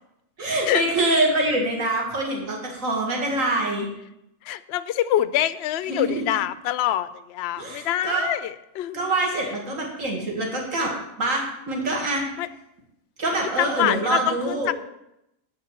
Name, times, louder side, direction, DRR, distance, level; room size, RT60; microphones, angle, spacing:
voice 1, 0.4-3.9 5.9-6.1 7.6-8.3 8.9-10.9 11.2-12.2 13.2-14.7, right 2 dB, 65° right, -1 dB, 2.4 m, -25 dB
voice 2, 4.4-9.1 12.4-12.5 13.6-14.7, left 12 dB, 65° left, 13 dB, 0.6 m, -25 dB
8.8 x 6.2 x 7.3 m, 0.84 s
omnidirectional pair, 1.5 m